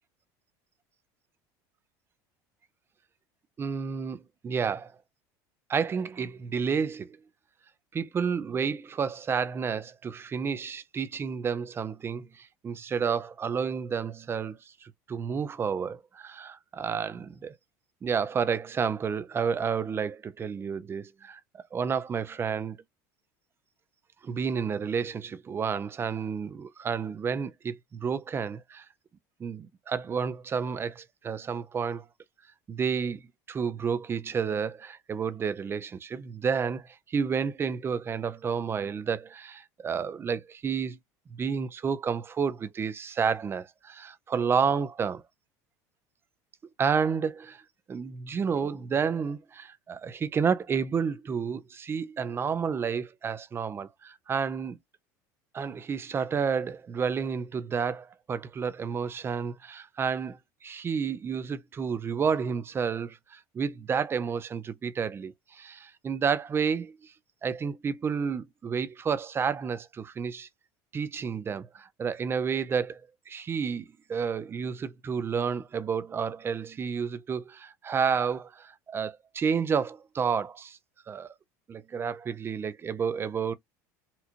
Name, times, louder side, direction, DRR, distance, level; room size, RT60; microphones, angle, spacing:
voice 1, 3.6-4.9 5.7-7.2 7.9-17.6 18.0-21.4 21.7-22.8 24.2-28.8 29.4-32.0 32.7-33.2 33.5-41.0 41.3-45.2 46.8-47.6 47.9-54.8 55.5-67.1 67.4-70.5 70.9-73.0 73.3-80.8 81.1-81.3 81.7-83.5, right 6 dB, 25° right, 0.5 m, -30 dB
4.2 x 2.4 x 2.9 m
supercardioid pair, 110°, 9 cm